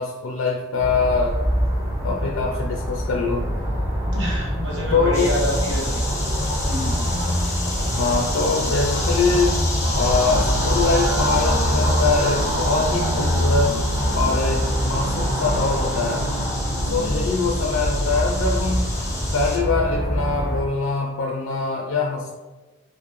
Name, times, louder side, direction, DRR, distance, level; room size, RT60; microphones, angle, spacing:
voice 1, 0.0-1.4 2.0-3.5 4.9-5.3 7.9-9.6 9.9-13.8 14.1-16.3 16.9-18.9 19.3-22.3, left 4 dB, 65° left, 0 dB, 0.4 m, -23 dB
sound 1, 0.8-20.6, equal, 15° right, 1.2 m, -24 dB
voice 2, 4.1-6.0 6.6-7.1, equal, 60° right, -2 dB, 0.9 m, -28 dB
sound 2, 5.1-19.6, left 2 dB, 15° left, 0.6 m, -31 dB
4.5 x 2.1 x 3.0 m, 1.2 s
head